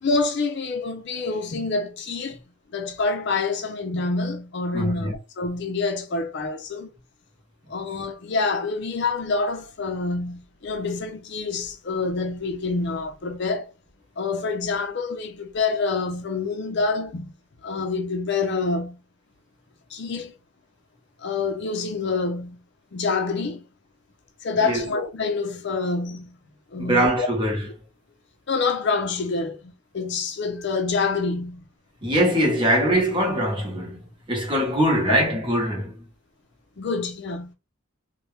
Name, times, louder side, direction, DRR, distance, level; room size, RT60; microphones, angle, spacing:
voice 1, 0.0-2.4 2.7-6.9 7.7-13.7 14.2-17.3 17.6-19.0 19.9-20.4 21.2-22.6 22.9-23.6 24.4-26.4 26.7-27.3 28.5-31.7 36.8-37.5, left 4 dB, 55° left, 0.5 m, -27 dB
voice 2, 4.7-5.1 24.6-24.8 26.8-27.7 32.0-36.0, right 1 dB, 20° right, 1.0 m, -22 dB
2.9 x 2.2 x 3.1 m
head